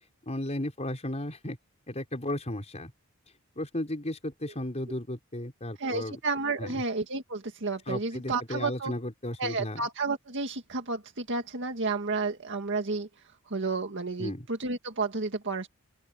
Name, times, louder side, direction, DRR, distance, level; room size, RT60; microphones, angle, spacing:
voice 1, 0.2-1.6 1.9-2.9 3.5-6.2 6.6-6.8 7.9-9.8 14.2-14.5, left 1 dB, 30° left, 5.1 m, -34 dB
voice 2, 5.8-8.9 9.4-13.1 13.5-15.7, right 3 dB, 60° right, 1.9 m, -31 dB
open air
head